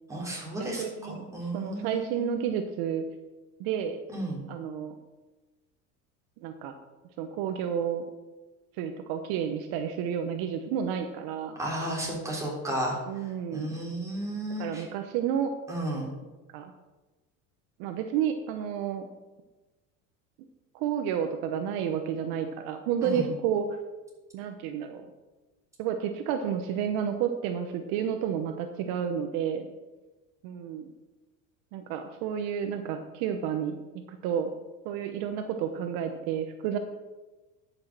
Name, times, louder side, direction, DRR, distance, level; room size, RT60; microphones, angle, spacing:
voice 1, 0.1-2.4 4.1-4.4 11.6-14.8 15.7-16.1 23.0-23.3, right 1 dB, 10° right, -4 dB, 3.7 m, -33 dB
voice 2, 0.6-1.3 1.5-3.0 3.6-4.0 4.5-5.0 6.4-6.7 7.2-8.0 8.8-11.5 13.1-13.8 14.6-15.5 16.5-16.7 17.8-19.1 20.7-23.6 24.3-25.0 25.8-29.7 30.4-30.9 31.7-33.8 34.1-34.5 34.8-36.8, right 8 dB, 65° right, 6 dB, 1.0 m, -31 dB
10.5 x 6.4 x 6.1 m, 1.2 s
supercardioid pair, 125°, 40 cm